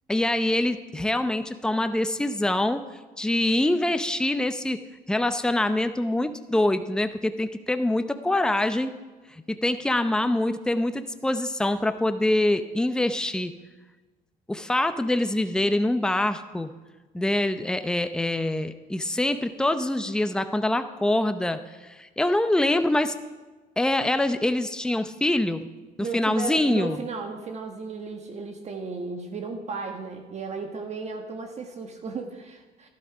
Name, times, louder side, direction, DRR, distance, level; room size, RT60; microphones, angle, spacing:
voice 1, 0.1-2.8 3.2-4.8 5.1-8.9 9.5-13.5 14.5-16.7 17.1-23.1 23.8-25.6 26.1-27.0, left 1 dB, 5° left, 9 dB, 0.6 m, -25 dB
voice 2, 26.0-32.9, right 4 dB, 40° right, 4 dB, 1.3 m, -34 dB
12.0 x 11.5 x 5.0 m, 1.3 s
cardioid pair, 110°, 17 cm